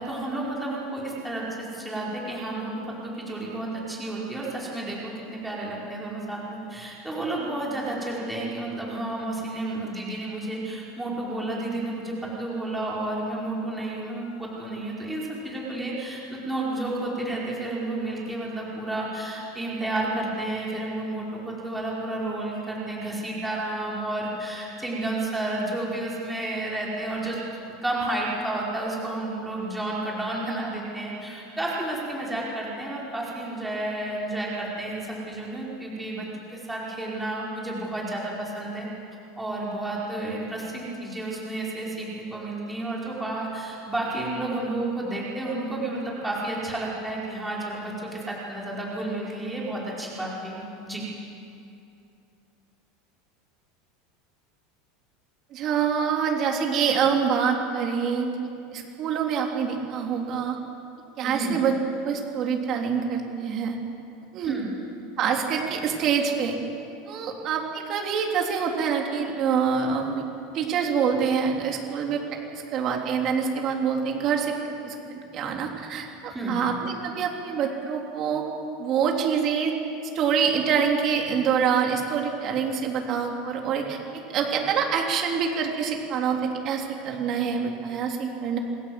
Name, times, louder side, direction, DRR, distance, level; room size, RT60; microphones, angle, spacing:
voice 1, 0.0-27.4 27.6-38.9 39.4-51.0 61.2-61.5 64.4-64.7 76.3-76.6, right 2 dB, 5° right, -5 dB, 4.9 m, -31 dB
voice 2, 55.5-58.3 58.7-60.6 61.2-63.8 64.3-64.6 65.2-66.6 67.1-72.2 72.5-74.5 74.8-78.4 78.8-79.7 80.1-88.6, right 6 dB, 35° right, 1 dB, 3.6 m, -26 dB
28.0 x 19.0 x 7.9 m, 2.7 s
supercardioid pair, 155°, 0 cm